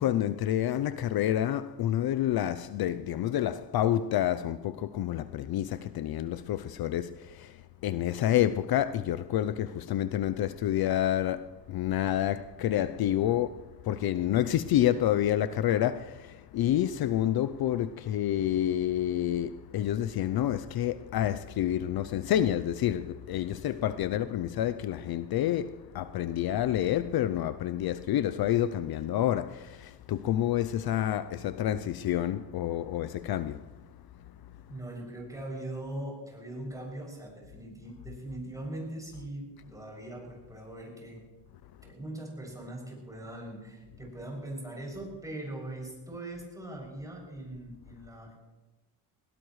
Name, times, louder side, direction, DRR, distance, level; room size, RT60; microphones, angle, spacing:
voice 1, 0.0-33.7 34.3-34.4, left 11 dB, 60° left, 0.6 m, -28 dB
voice 2, 34.7-41.2 41.8-48.4, right 1 dB, 10° right, 7.1 m, -41 dB
21.0 x 18.0 x 3.2 m
cardioid pair, 105°, 43 cm